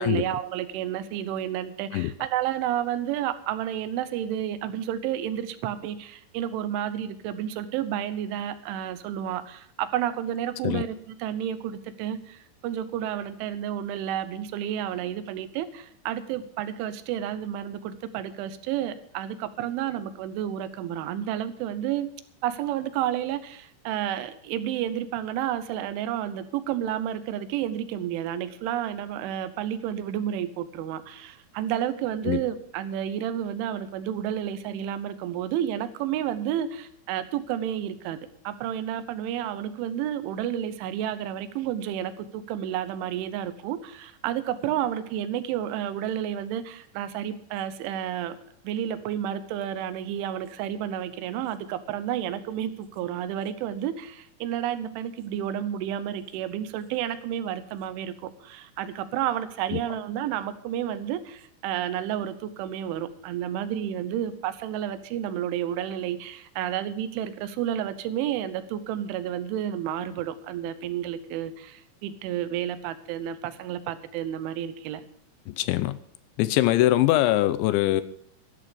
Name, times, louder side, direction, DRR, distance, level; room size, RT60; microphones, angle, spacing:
voice 1, 0.0-22.1 22.4-38.2 38.4-48.4 48.6-75.0, right 10 dB, 85° right, 12 dB, 3.3 m, -31 dB
voice 2, 75.5-76.0 76.4-78.0, left 15 dB, 80° left, 15 dB, 2.8 m, -22 dB
13.0 x 12.5 x 5.1 m, 0.67 s
omnidirectional pair, 5.5 m